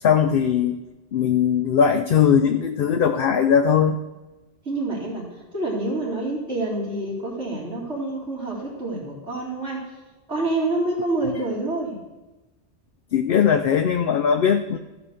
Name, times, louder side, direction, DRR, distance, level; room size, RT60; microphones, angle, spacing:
voice 1, 0.0-0.8 1.1-4.0 13.1-14.8, left 7 dB, 60° left, 6 dB, 0.7 m, -19 dB
voice 2, 4.6-9.9 10.3-12.0, right 2 dB, 90° right, -6 dB, 3.1 m, -27 dB
13.5 x 5.1 x 6.3 m, 1.1 s
omnidirectional pair, 1.2 m